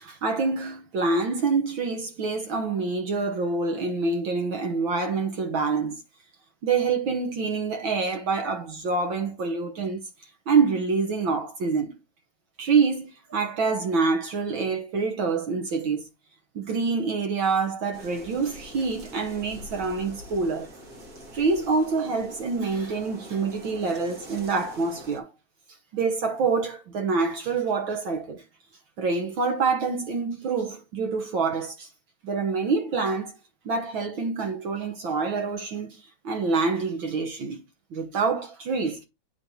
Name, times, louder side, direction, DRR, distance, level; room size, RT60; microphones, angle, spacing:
voice 1, 0.0-6.0 6.6-10.1 10.5-11.9 12.6-16.1 16.5-20.7 21.3-25.3 25.9-28.4 29.0-31.9 32.2-33.3 33.6-37.6 37.9-39.0, right 4 dB, 60° right, 1.4 m, -26 dB
sound 1, 17.9-25.2, equal, 40° right, 1.4 m, -44 dB
9.0 x 3.2 x 4.1 m
omnidirectional pair, 3.4 m